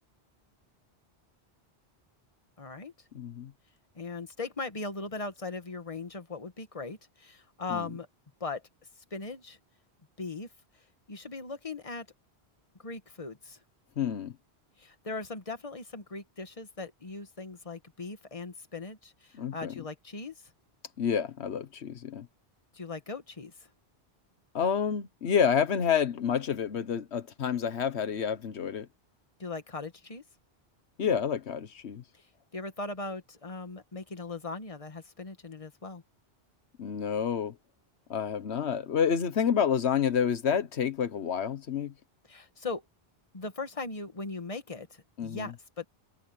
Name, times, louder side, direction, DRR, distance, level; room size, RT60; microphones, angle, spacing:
voice 1, 2.6-2.9 3.9-8.1 8.4-8.6 9.1-9.6 10.2-10.5 11.1-12.1 12.8-13.6 14.8-20.5 22.7-23.7 29.4-30.2 32.1-32.2 32.5-36.0 42.3-42.8 43.3-45.9, left 3 dB, 35° left, 1.7 m, -39 dB
voice 2, 3.1-3.5 7.7-7.8 14.0-14.3 19.3-19.7 21.0-22.3 24.5-28.9 31.0-32.0 36.8-37.5 38.1-41.9 45.2-45.5, left 7 dB, 85° left, 1.3 m, -29 dB
omnidirectional pair, 1.1 m